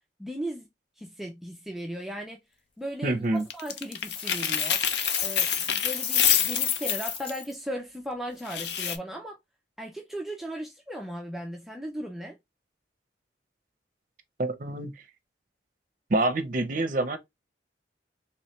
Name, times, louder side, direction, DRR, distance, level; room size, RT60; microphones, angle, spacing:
voice 1, 0.2-0.7 1.0-2.4 2.8-4.8 5.2-9.4 9.8-12.4, equal, ahead, 0.4 m, -37 dB
voice 2, 3.0-3.4 14.4-15.0 16.1-17.2, right 2 dB, 45° right, 0.6 m, -26 dB
sound 1, 3.5-7.4 8.5-9.0, left 9 dB, 65° left, 0.5 m, -26 dB
Coin (dropping), 3.9-7.4, left 4 dB, 30° left, 1.0 m, -38 dB
3.1 x 3.1 x 3.0 m
head